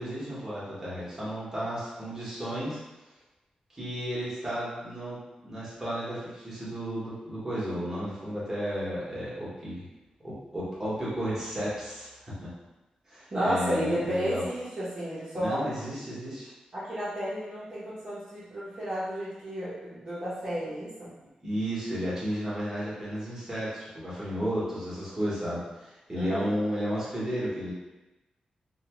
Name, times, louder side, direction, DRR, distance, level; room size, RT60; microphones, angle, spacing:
voice 1, 0.0-2.8 3.7-5.2 5.4-9.8 10.2-12.5 13.1-14.4 15.3-16.5 21.4-27.7, equal, 15° right, -9 dB, 1.0 m, -33 dB
voice 2, 13.3-15.7 16.7-21.1 26.1-26.6, equal, 40° right, -11 dB, 0.8 m, -32 dB
2.7 x 2.2 x 2.9 m, 1.1 s
wide cardioid pair, 145°, 2 cm